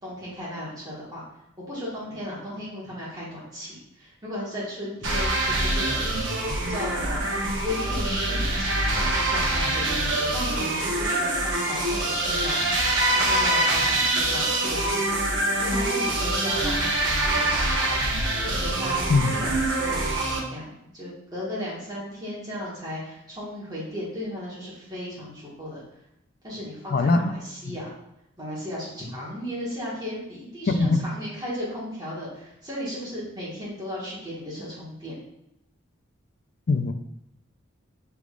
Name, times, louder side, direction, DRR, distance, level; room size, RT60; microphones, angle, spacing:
voice 1, 0.0-1.2 1.6-7.3 7.6-18.2 18.5-20.2 20.5-25.8 26.4-27.9 28.4-35.2, left 1 dB, 20° right, -7 dB, 1.5 m, -35 dB
sound 1, 5.0-20.4, right 2 dB, 65° right, 0.9 m, -25 dB
voice 2, 26.9-27.3 27.6-27.8 30.7-31.1 36.7-36.9, left 3 dB, 45° left, 8 dB, 0.3 m, -21 dB
6.1 x 3.5 x 2.4 m, 0.83 s
head